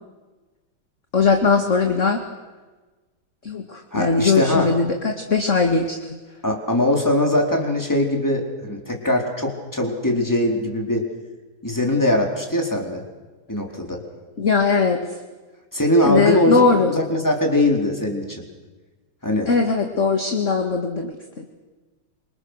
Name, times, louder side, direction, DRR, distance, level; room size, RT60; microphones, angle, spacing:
voice 1, 1.1-2.2 3.4-6.0 14.4-15.0 16.0-16.9 19.5-21.4, left 4 dB, 35° left, 4 dB, 2.2 m, -20 dB
voice 2, 3.9-4.7 6.4-11.1 11.6-13.0 13.5-14.0 15.7-16.6 16.9-18.4 19.2-19.5, left 1 dB, 10° left, 1 dB, 4.3 m, -21 dB
27.5 x 26.0 x 6.6 m, 1.2 s
omnidirectional pair, 2.4 m